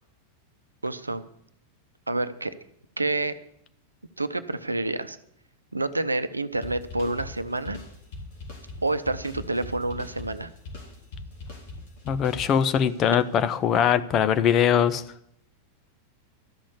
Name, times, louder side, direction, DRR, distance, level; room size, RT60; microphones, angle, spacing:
voice 1, 0.8-1.2 2.1-2.5 3.0-3.3 4.2-5.2 5.7-7.8 8.8-10.5, right 2 dB, 80° right, 12 dB, 0.7 m, -28 dB
sound 1, 6.6-13.0, left 2 dB, 50° left, 3.7 m, -41 dB
voice 2, 12.0-15.0, left 8 dB, 30° left, 11 dB, 0.7 m, -22 dB
13.0 x 6.3 x 9.5 m, 0.73 s
figure-of-eight pair, 90°, 0 cm